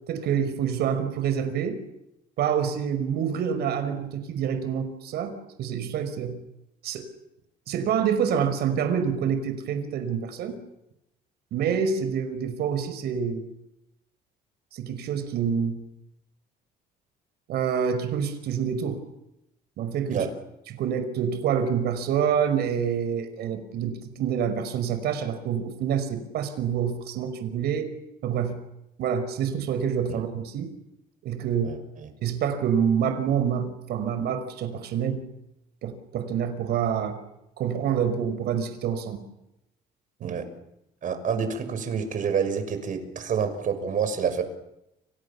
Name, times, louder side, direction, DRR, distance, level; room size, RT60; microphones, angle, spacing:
voice 1, 0.1-1.8 2.4-6.4 6.8-7.1 7.7-10.6 11.5-13.4 14.7-15.8 17.5-19.0 19.8-20.3 20.7-27.9 28.2-28.6 29.0-30.7 31.2-31.8 32.2-35.2 35.8-37.2 37.6-39.2 40.2-40.4, right 7 dB, 70° right, 9 dB, 5.3 m, -27 dB
voice 2, 41.0-44.4, right 6 dB, 50° right, 9 dB, 6.4 m, -28 dB
29.5 x 28.0 x 7.2 m, 0.87 s
cardioid pair, 110°, 17 cm